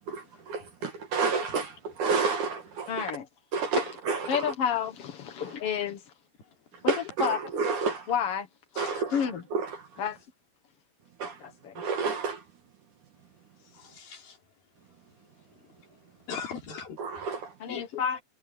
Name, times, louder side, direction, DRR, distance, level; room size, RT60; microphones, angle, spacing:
voice 1, 0.1-3.1 3.5-4.5 6.9-8.1 8.8-9.9 11.2-11.4 11.8-12.4 17.0-17.5, right 5 dB, 55° right, 2.9 m, -30 dB
voice 2, 2.9-3.3 3.8-3.9 4.3-6.0 6.8-6.9 7.2-7.4 8.1-8.5 9.1-9.4 10.0-10.2 11.2-11.8 17.6-18.2, left 8 dB, 80° left, 1.3 m, -30 dB
voice 3, 8.8-9.3 13.7-14.4 16.3-17.0 17.7-17.9, left 6 dB, 60° left, 5.5 m, -39 dB
omnidirectional pair, 4.8 m